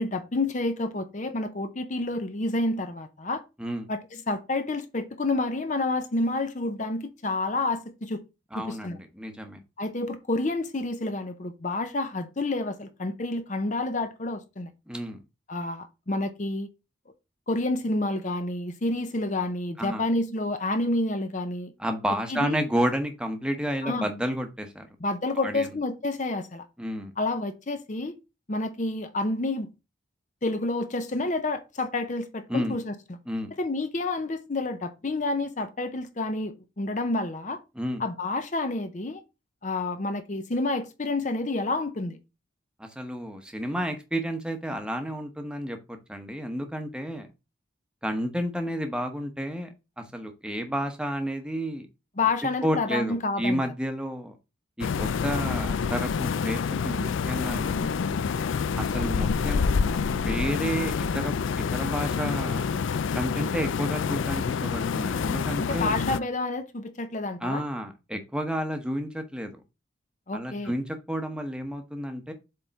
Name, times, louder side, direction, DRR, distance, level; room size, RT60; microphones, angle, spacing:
voice 1, 0.0-3.4 3.9-8.2 8.5-9.0 9.8-14.7 15.5-16.7 17.5-21.7 22.3-22.6 23.8-24.1 25.0-26.6 27.2-28.1 28.5-29.7 30.4-32.9 33.6-37.6 38.0-39.2 39.6-42.2 52.2-53.6 65.6-67.6 70.3-70.7, left 2 dB, 35° left, 0.6 m, -29 dB
voice 2, 8.5-9.6 14.9-15.2 19.8-20.0 21.8-24.9 25.4-25.7 26.8-27.1 32.5-32.8 33.3-33.5 37.7-38.0 42.8-47.3 48.0-49.7 50.0-51.9 52.6-54.4 54.8-57.9 58.8-62.7 63.1-66.0 67.4-69.5 70.3-72.3, equal, 5° right, 0.9 m, -31 dB
sound 1, 54.8-66.2, left 5 dB, 75° left, 0.4 m, -27 dB
7.6 x 3.6 x 4.0 m
head